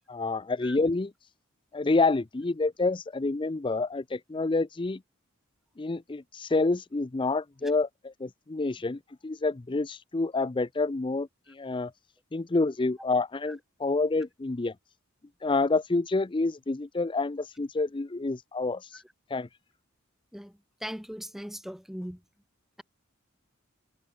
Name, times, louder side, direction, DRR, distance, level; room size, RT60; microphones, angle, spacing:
voice 1, 0.1-1.1 1.7-5.0 5.8-11.9 12.3-14.7 15.4-19.0 19.3-19.5, left 3 dB, 25° left, 0.5 m, -28 dB
voice 2, 20.8-22.2, equal, ahead, 3.6 m, -39 dB
head